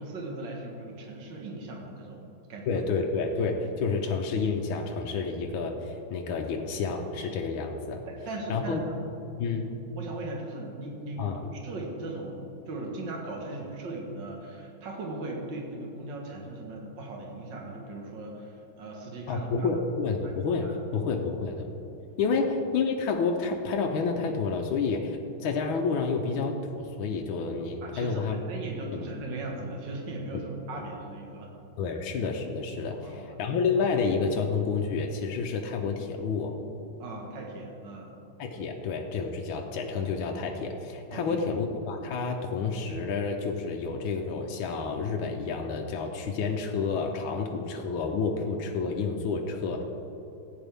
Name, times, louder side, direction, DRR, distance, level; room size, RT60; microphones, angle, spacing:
voice 1, 0.0-2.2 2.5-2.8 8.1-8.8 9.4-9.6 9.9-19.7 20.6-20.7 22.3-22.4 27.8-31.5 31.9-32.0 33.0-33.4 37.0-38.1 41.1-41.4, right 2 dB, 65° right, 0 dB, 2.1 m, -38 dB
voice 2, 2.7-8.0 8.5-8.8 9.4-9.8 11.2-11.4 19.3-21.7 22.2-28.4 28.9-29.0 30.3-30.4 31.8-36.6 38.4-49.8, left 4 dB, 75° left, 1 dB, 1.6 m, -29 dB
15.0 x 9.4 x 3.5 m, 2.9 s
omnidirectional pair, 2.3 m